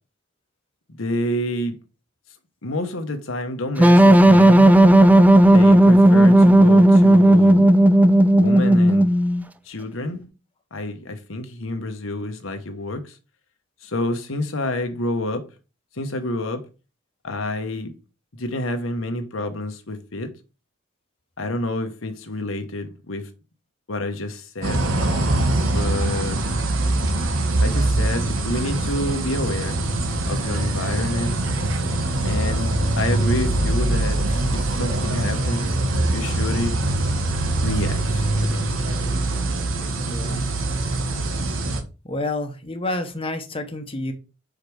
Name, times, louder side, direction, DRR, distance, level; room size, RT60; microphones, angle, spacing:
voice 1, 1.0-1.8 2.6-4.6 5.5-7.7 8.3-9.1 9.7-10.3 10.7-13.2 13.8-15.4 15.9-16.6 17.2-17.9 18.3-20.3 21.4-23.3 23.9-24.9 25.6-26.6 27.6-29.8 30.3-31.3 32.2-32.7 33.0-35.6 36.1-36.8 37.6-38.7, left 1 dB, 80° left, 1.1 m, -28 dB
sound 1, 3.8-9.4, right 1 dB, 10° right, 0.3 m, -12 dB
Water Meter, 24.6-41.8, right 2 dB, 80° right, 1.1 m, -23 dB
voice 2, 40.0-40.4 42.0-44.1, left 2 dB, 25° left, 1.0 m, -29 dB
5.2 x 4.8 x 4.7 m
head